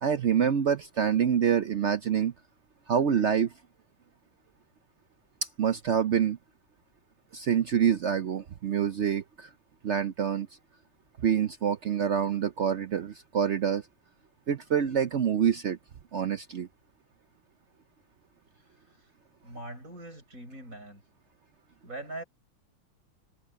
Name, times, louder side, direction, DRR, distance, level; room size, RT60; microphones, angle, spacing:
voice 1, 0.0-2.3 2.9-3.5 5.4-6.4 7.3-9.5 9.8-10.5 11.2-13.9 14.5-15.8 16.1-16.7, right 8 dB, 75° right, 0.6 m, -26 dB
voice 2, 19.4-21.0 21.8-22.2, right 2 dB, 45° right, 7.1 m, -42 dB
omnidirectional pair, 2.1 m